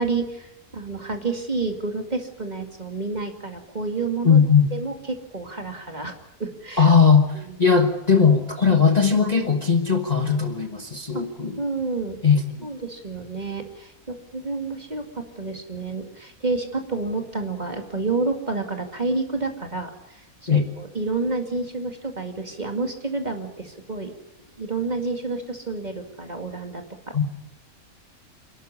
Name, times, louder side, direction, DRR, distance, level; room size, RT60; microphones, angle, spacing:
voice 1, 0.0-4.4 4.7-6.9 7.4-7.6 9.1-9.3 11.1-11.2 11.6-12.2 12.6-24.1 24.6-27.2, right 3 dB, 30° right, 5 dB, 2.3 m, -29 dB
voice 2, 4.2-4.7 6.8-11.6 12.2-12.7 20.5-20.7 27.1-27.2, left 6 dB, 30° left, 5 dB, 1.4 m, -18 dB
27.0 x 12.0 x 9.7 m, 0.89 s
omnidirectional pair, 1.6 m